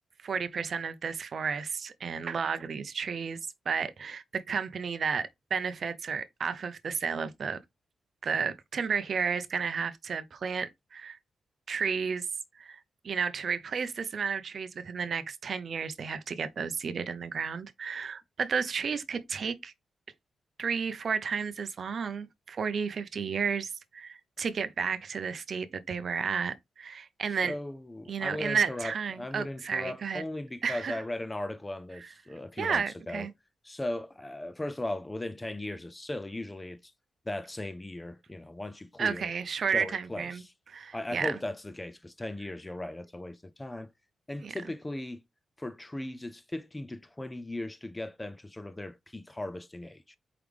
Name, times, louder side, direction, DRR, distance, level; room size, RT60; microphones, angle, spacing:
voice 1, 0.2-3.4 3.7-7.6 8.2-11.2 11.7-12.3 12.6-12.8 13.0-19.7 20.6-27.5 28.1-30.2 30.6-31.0 32.6-33.3 39.0-40.4 40.7-41.4 44.4-44.5, right 6 dB, 50° right, 0.5 m, -32 dB
voice 2, 27.4-33.3 33.6-36.9 37.3-39.3 39.7-40.5 40.9-43.9 44.3-45.2 45.6-50.2, left 1 dB, 10° left, 0.3 m, -37 dB
4.8 x 3.5 x 3.2 m
wide cardioid pair, 155°, 0 cm